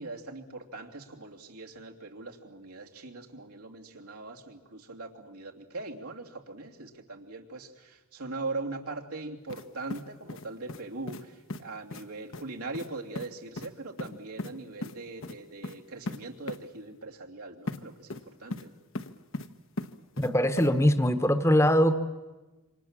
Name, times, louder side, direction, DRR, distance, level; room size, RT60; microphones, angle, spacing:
voice 1, 0.0-18.7, right 3 dB, 85° right, 0 dB, 2.9 m, -41 dB
sound 1, 9.5-9.6 9.9-10.8 11.1-11.2 11.5-11.6 11.9-12.0 12.3-12.4 12.7-12.9 13.1-13.3 13.6-13.7 14.0-14.5 14.8-14.9 15.2-15.3 15.6-15.8 16.1-16.2 16.5-16.6 17.7-17.8 18.1-18.7 18.9-19.5 19.8-20.3 20.6-20.7, left 2 dB, 60° left, 1.1 m, -37 dB
voice 2, 20.2-21.9, equal, 10° left, 10 dB, 1.1 m, -22 dB
27.5 x 26.0 x 7.5 m, 1.2 s
head